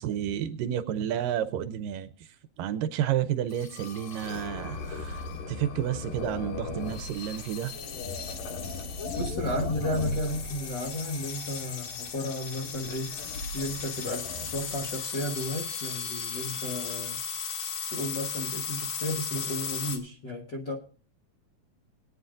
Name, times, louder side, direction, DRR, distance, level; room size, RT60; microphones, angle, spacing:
voice 1, 0.0-2.1 2.6-5.2 5.5-7.7, right 10 dB, 80° right, 11 dB, 2.2 m, -30 dB
sound 1, 3.5-20.0, left 5 dB, 70° left, 2.9 m, -35 dB
voice 2, 9.2-13.1 13.5-14.3 14.5-17.2 17.9-20.8, left 1 dB, 55° left, -1 dB, 1.3 m, -33 dB
21.0 x 9.7 x 2.5 m, 0.39 s
omnidirectional pair, 4.2 m